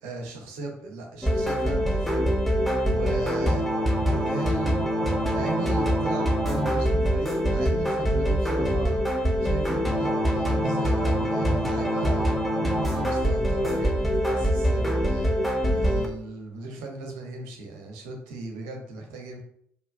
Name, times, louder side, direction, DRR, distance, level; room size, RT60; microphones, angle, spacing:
voice 1, 0.0-2.2 2.9-3.7 4.0-4.9 5.2-9.0 9.4-12.3 12.8-19.4, right 2 dB, 65° right, 2 dB, 0.8 m, -37 dB
sound 1, 1.2-16.1, equal, ahead, 0.7 m, -24 dB
4.4 x 2.8 x 2.3 m, 0.67 s
figure-of-eight pair, 45°, 7 cm